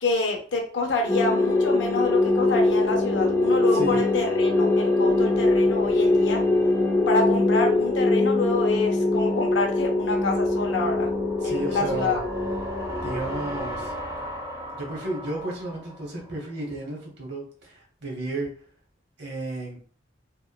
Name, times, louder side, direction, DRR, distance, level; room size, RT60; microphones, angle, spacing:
voice 1, 0.0-6.4 7.1-11.1 11.4-12.2, left 3 dB, 70° left, 1 dB, 0.5 m, -27 dB
sound 1, 1.1-13.9, left 2 dB, 15° left, 0.3 m, -23 dB
sound 2, 1.5-16.5, left 1 dB, 15° right, 0.7 m, -38 dB
voice 2, 11.4-12.2 13.0-13.9 14.7-18.5 19.2-19.8, right 2 dB, 65° right, -1 dB, 0.9 m, -32 dB
2.9 x 2.1 x 2.2 m, 0.44 s
head